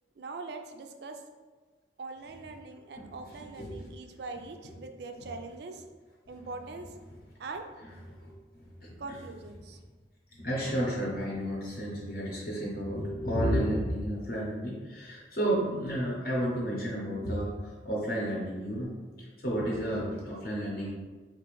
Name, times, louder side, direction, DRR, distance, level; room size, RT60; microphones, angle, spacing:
voice 1, 0.2-1.2 2.0-5.8 6.3-6.9 7.4-7.7 9.0-9.8, right 3 dB, 70° right, 5 dB, 0.4 m, -42 dB
voice 2, 3.6-3.9 8.1-9.2 10.4-20.9, equal, 55° left, -5 dB, 0.7 m, -32 dB
4.2 x 2.4 x 3.0 m, 1.3 s
head